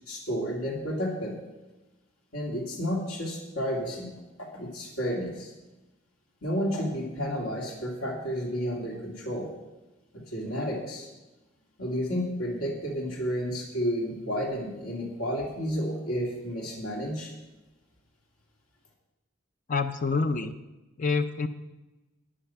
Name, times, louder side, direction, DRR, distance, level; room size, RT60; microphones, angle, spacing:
voice 1, 0.1-1.4 2.3-4.1 4.4-5.5 6.4-9.5 10.1-11.1 11.8-17.3, equal, 80° left, -2 dB, 2.4 m, -31 dB
voice 2, 19.7-20.5 21.0-21.5, left 4 dB, 35° left, 9 dB, 0.4 m, -27 dB
10.0 x 9.8 x 5.7 m, 1.1 s
head